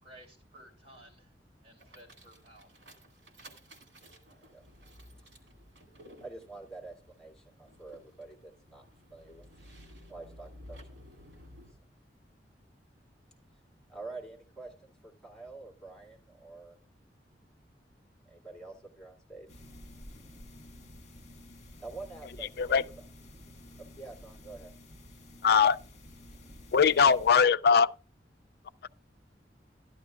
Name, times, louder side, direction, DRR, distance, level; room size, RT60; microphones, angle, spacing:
voice 1, 0.0-1.3 1.6-2.8, right 1 dB, 35° right, 3.4 m, -55 dB
sound 1, 1.8-11.7, equal, 80° right, 2.3 m, -54 dB
voice 2, 6.2-11.0 13.9-16.8 18.2-19.5 21.8-22.8 23.9-24.7, right 3 dB, 5° left, 2.3 m, -47 dB
sound 2, 19.5-27.3, left 1 dB, 40° left, 1.5 m, -51 dB
voice 3, 25.4-25.8 26.7-27.9, left 6 dB, 60° left, 0.4 m, -21 dB
12.5 x 11.5 x 2.4 m
head